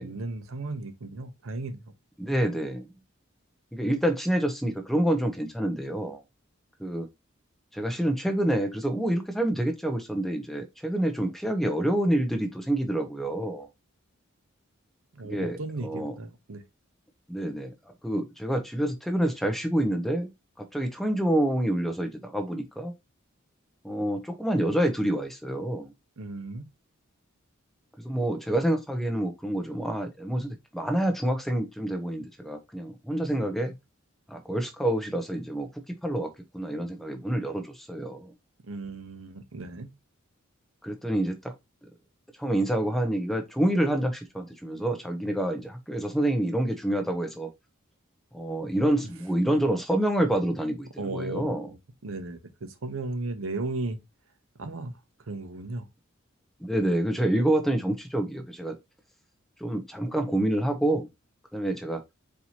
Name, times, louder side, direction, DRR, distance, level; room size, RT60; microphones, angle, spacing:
voice 1, 0.0-1.9 15.1-16.6 26.2-26.6 38.6-39.9 51.0-51.8 52.0-54.0 54.6-54.9 55.3-55.9, right 2 dB, 80° right, 0.7 m, -35 dB
voice 2, 2.2-2.8 3.7-6.2 6.8-7.1 7.7-13.7 15.2-16.1 17.3-17.7 18.0-20.3 20.6-22.9 23.8-25.9 28.0-33.7 34.3-35.7 36.0-38.3 40.8-41.5 42.4-47.5 48.3-51.7 56.6-58.7 59.6-61.1 61.5-62.0, right 1 dB, ahead, 0.5 m, -27 dB
4.3 x 2.7 x 2.8 m
head